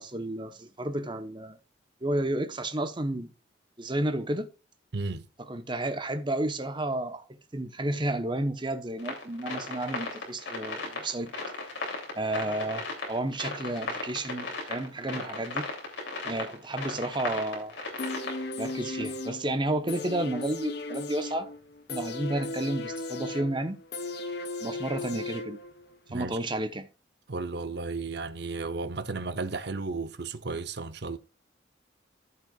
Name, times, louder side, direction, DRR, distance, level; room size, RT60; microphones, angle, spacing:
voice 1, 0.0-1.6 2.0-3.3 3.8-4.5 5.5-7.2 7.5-11.3 12.1-15.7 16.2-17.7 18.6-21.5 21.9-23.8 24.6-25.6 26.1-26.9, right 1 dB, 25° right, 0.9 m, -31 dB
voice 2, 4.9-5.3 26.1-26.4 27.3-31.2, right 3 dB, 55° right, 0.7 m, -34 dB
sound 1, 9.0-18.7, left 3 dB, 70° left, 2.9 m, -36 dB
sound 2, 18.0-26.0 26.3-26.4, left 2 dB, 55° left, 1.0 m, -36 dB
14.5 x 5.7 x 2.4 m
head